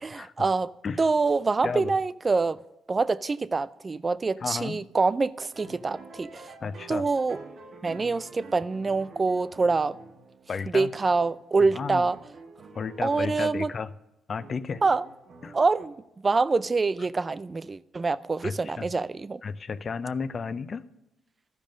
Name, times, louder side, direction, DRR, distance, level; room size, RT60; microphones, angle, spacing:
voice 1, 0.0-0.7 1.0-2.6 2.9-6.5 6.9-7.4 7.8-10.0 10.7-12.2 13.0-13.7 14.8-15.0 15.5-15.9 16.2-19.4, right 4 dB, 30° right, 0.3 m, -25 dB
voice 2, 4.4-4.8 6.6-7.1 10.5-10.9 11.6-12.1 12.7-13.9 14.3-14.8 15.4-15.5 18.4-18.9 19.4-20.8, left 5 dB, 45° left, 0.5 m, -33 dB
sound 1, 5.5-10.6 10.9-13.6 14.4-15.9, right 3 dB, 55° right, 1.1 m, -48 dB
12.0 x 5.2 x 6.2 m
cardioid pair, 90°, 0 cm